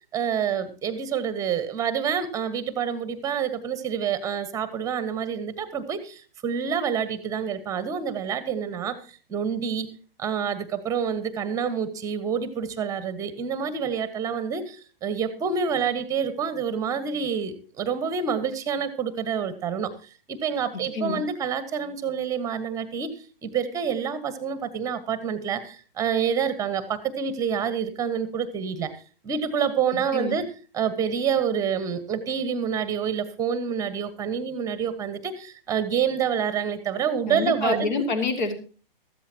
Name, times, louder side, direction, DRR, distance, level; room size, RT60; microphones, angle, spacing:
voice 1, 0.1-9.9 10.2-19.9 20.3-23.1 23.4-28.9 29.2-30.5 30.7-37.9, right 7 dB, 10° right, 14 dB, 1.3 m, -27 dB
voice 2, 37.3-38.6, left 4 dB, 50° left, 8 dB, 2.6 m, -27 dB
14.5 x 14.0 x 2.8 m, 0.37 s
figure-of-eight pair, 120°, 29 cm